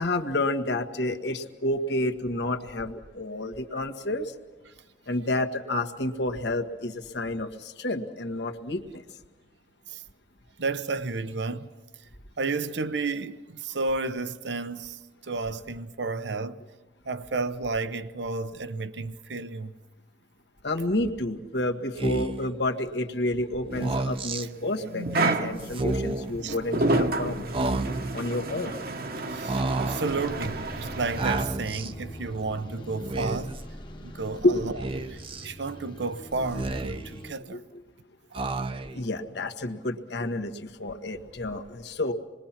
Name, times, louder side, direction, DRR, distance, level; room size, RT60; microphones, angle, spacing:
voice 1, 0.0-4.3 5.1-9.0 20.6-27.4 28.1-28.7 34.4-34.7 37.5-37.6 38.9-42.1, left 1 dB, 70° left, 1.6 m, -29 dB
voice 2, 10.6-11.7 12.4-16.6 17.1-19.7 26.4-26.5 29.3-33.5 34.0-34.7 35.1-37.6 38.3-38.4, right 3 dB, 80° right, 0.9 m, -32 dB
Speech, 22.0-22.5 23.7-24.5 25.7-26.3 27.5-28.2 29.5-30.1 31.2-31.9 33.0-33.6 34.8-35.5 36.4-37.2 38.3-39.0, right 2 dB, 30° right, 0.7 m, -30 dB
sound 1, 23.7-31.4, right 2 dB, 55° right, 1.2 m, -30 dB
sound 2, 30.0-37.3, equal, 25° left, 1.2 m, -42 dB
27.0 x 21.5 x 5.9 m
head